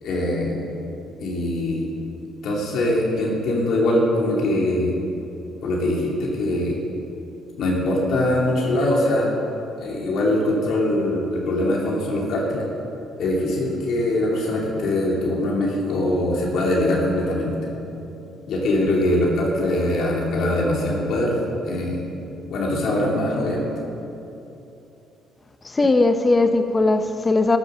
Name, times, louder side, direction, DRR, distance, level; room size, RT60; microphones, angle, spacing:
voice 1, 0.0-0.6 1.2-1.9 2.4-4.9 5.6-6.7 7.6-9.3 9.8-12.6 13.2-17.7 18.5-22.0 22.5-23.7, left 1 dB, 70° left, -3 dB, 2.6 m, -22 dB
voice 2, 25.6-27.6, left 2 dB, 25° left, 8 dB, 0.7 m, -19 dB
13.0 x 10.5 x 6.7 m, 2.9 s
cardioid pair, 80°, 0 cm